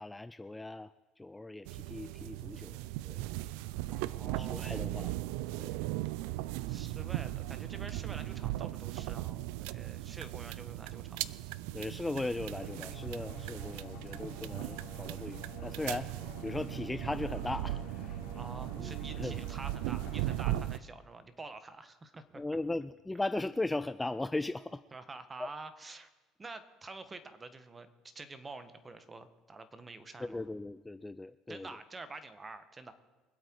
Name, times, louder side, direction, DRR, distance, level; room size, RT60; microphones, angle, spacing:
voice 1, 0.0-2.8 3.0-3.3 4.2-5.2 5.5-5.8 11.7-16.1 16.4-18.2 18.8-19.4 22.4-24.8 25.4-25.5 30.2-31.7, left 2 dB, 10° left, 14 dB, 0.4 m, -38 dB
sound 1, 1.7-20.8, right 16 dB, 80° right, 0.4 m, -38 dB
voice 2, 3.9-4.9 6.7-11.2 18.3-22.4 24.9-26.1 26.4-30.4 31.5-32.9, right 3 dB, 20° right, 11 dB, 1.5 m, -48 dB
sound 2, 12.6-20.6, left 6 dB, 75° left, 3.1 m, -51 dB
24.0 x 8.3 x 4.7 m, 1.3 s
supercardioid pair, 95°, 0 cm